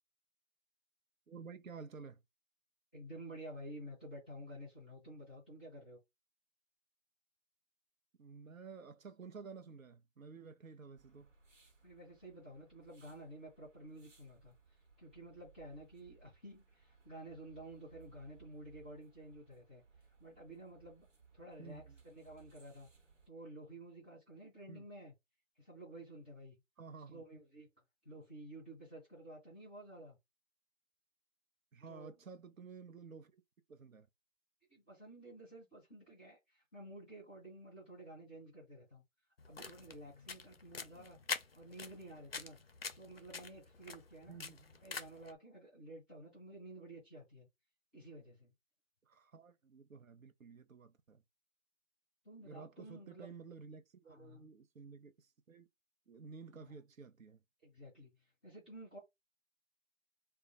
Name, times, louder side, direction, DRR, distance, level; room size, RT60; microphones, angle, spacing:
voice 1, 1.3-2.2 8.2-11.3 21.6-21.9 24.7-24.9 26.8-27.2 31.7-33.3 33.7-34.1 40.9-41.1 44.3-44.7 49.1-51.2 52.4-55.7 56.1-57.4, right 5 dB, 85° right, 0.7 m, -52 dB
voice 2, 2.9-6.0 11.8-14.5 15.0-19.8 20.2-21.0 21.3-22.9 23.3-25.1 25.6-26.6 27.1-27.7 28.0-30.2 31.9-32.2 34.7-39.0 39.5-41.2 41.5-42.6 42.9-44.4 44.8-47.5 47.9-48.5 52.2-53.3 54.1-54.5 56.5-56.7 57.6-59.0, right 1 dB, 10° right, 0.7 m, -52 dB
sound 1, 11.0-23.3, right 5 dB, 65° right, 1.1 m, -65 dB
sound 2, 39.4-45.3, left 5 dB, 50° left, 0.5 m, -46 dB
2.2 x 2.0 x 3.6 m
figure-of-eight pair, 155°, 39 cm